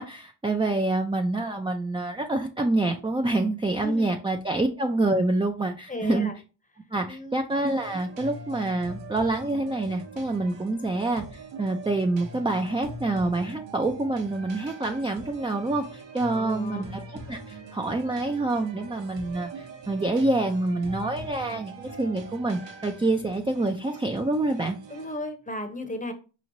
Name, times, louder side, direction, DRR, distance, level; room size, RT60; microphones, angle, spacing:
voice 1, 0.0-6.3 6.9-24.8, right 2 dB, 10° right, 4 dB, 0.4 m, -27 dB
voice 2, 3.8-4.1 5.9-6.3 7.1-7.4 16.3-16.8 24.9-26.1, left 1 dB, 15° left, 6 dB, 0.8 m, -35 dB
sound 1, 7.5-25.2, right 2 dB, 65° right, 1.0 m, -42 dB
4.8 x 3.1 x 2.7 m, 0.34 s
cardioid pair, 70°, 48 cm